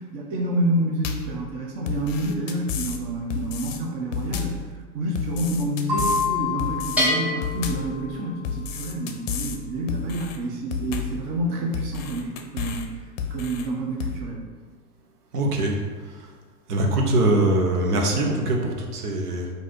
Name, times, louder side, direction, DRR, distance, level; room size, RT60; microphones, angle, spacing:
voice 1, 0.0-12.9 13.3-14.5, right 1 dB, 25° right, -1 dB, 0.4 m, -28 dB
sound 1, 1.0-1.4 1.9-3.0 3.3-3.8 4.1-4.6 5.2-6.3 6.6-7.1 7.4-7.9 8.4-9.6 9.9-10.4 10.7-11.2 11.7-12.9 13.2-13.7 14.0-14.2, left 6 dB, 50° left, 0.6 m, -31 dB
sound 2, 5.9-8.4, left 5 dB, 85° right, 1.5 m, -28 dB
Bell, 7.0-8.7, left 1 dB, 5° right, 0.9 m, -27 dB
voice 2, 15.3-15.8 16.1-16.2 16.7-19.5, right 1 dB, 65° right, 1 dB, 1.0 m, -22 dB
4.1 x 2.6 x 4.3 m, 1.4 s
figure-of-eight pair, 100°, 50 cm